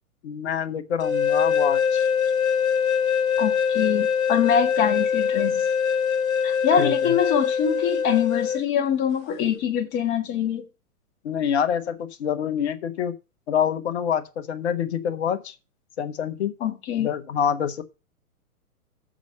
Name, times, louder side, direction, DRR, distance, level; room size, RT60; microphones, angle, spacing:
voice 1, 0.2-2.1 6.8-7.1 11.2-13.1 13.5-15.5 16.0-16.5 17.0-17.8, left 8 dB, 45° left, 1.2 m, -26 dB
sound 1, 1.0-8.6, left 7 dB, 65° left, 1.3 m, -23 dB
voice 2, 3.4-5.7 6.4-10.6 16.6-17.1, left 8 dB, 25° left, 1.5 m, -24 dB
6.8 x 6.2 x 6.5 m
figure-of-eight pair, 115°, 45 cm